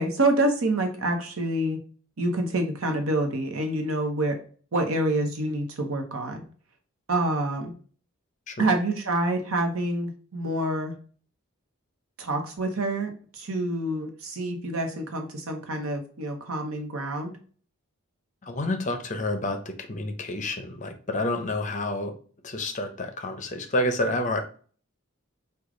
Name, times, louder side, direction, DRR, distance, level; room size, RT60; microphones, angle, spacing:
voice 1, 0.0-1.8 2.2-4.4 4.7-6.4 7.1-7.7 8.6-10.9 12.2-17.3, right 1 dB, 80° right, 5 dB, 0.9 m, -27 dB
voice 2, 18.4-22.1 22.4-24.4, left 1 dB, 35° left, 6 dB, 0.6 m, -29 dB
4.8 x 2.3 x 3.8 m, 0.42 s
head